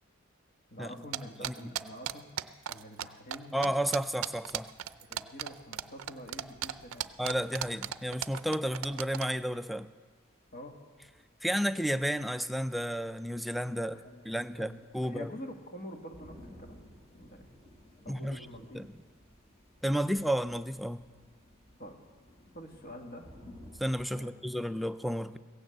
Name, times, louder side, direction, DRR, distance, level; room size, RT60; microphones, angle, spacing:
voice 1, 0.7-2.3 2.7-3.7 4.9-7.1 10.5-10.8 13.7-14.2 14.5-16.8 17.1-17.5 18.0-18.8 21.8-22.0 22.5-23.3 24.2-24.4, equal, 45° left, 3 dB, 1.6 m, -46 dB
sound 1, 1.1-3.1 3.3-3.4 3.6-9.3, right 11 dB, 85° right, 0.5 m, -35 dB
voice 2, 1.4-1.7 3.5-4.7 7.2-9.9 11.4-14.0 14.3-15.3 18.1-18.5 18.7-18.9 19.8-21.1 23.8-25.4, equal, ahead, 11 dB, 0.3 m, -32 dB
sound 2, 4.2-24.1, equal, 25° left, 2.2 m, -58 dB
16.5 x 9.2 x 7.7 m, 1.5 s
head